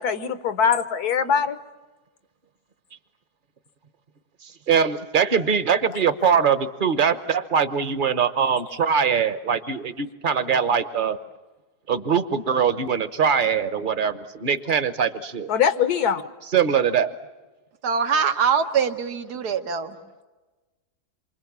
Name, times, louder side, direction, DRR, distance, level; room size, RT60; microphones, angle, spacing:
voice 1, 0.0-1.6 15.5-16.2, left 7 dB, 75° left, 12 dB, 1.5 m, -22 dB
voice 2, 4.4-11.2 11.9-15.5 16.4-17.1, right 7 dB, 35° right, 12 dB, 1.0 m, -22 dB
voice 3, 17.8-20.0, right 6 dB, 80° right, 8 dB, 1.8 m, -23 dB
27.5 x 24.5 x 7.4 m, 1.2 s
omnidirectional pair, 1.7 m